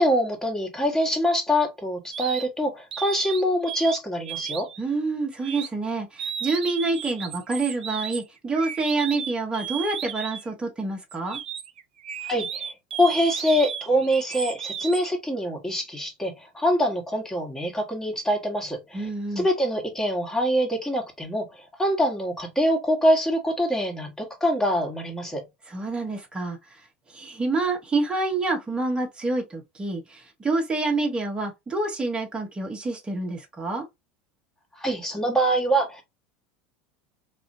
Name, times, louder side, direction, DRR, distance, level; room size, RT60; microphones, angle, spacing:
voice 1, 0.0-4.7 12.2-19.1 19.4-25.4 34.8-36.0, equal, 10° left, 1.5 m, -24 dB
sound 1, 2.1-2.5 2.9-4.0 4.2-4.8 5.4-5.7 6.2-10.5 11.1-15.1, right 8 dB, 75° right, 0.4 m, -34 dB
voice 2, 4.8-11.4 18.9-19.5 25.7-33.8, right 3 dB, 15° right, 1.1 m, -27 dB
4.1 x 2.5 x 2.6 m
figure-of-eight pair, 75°, 5 cm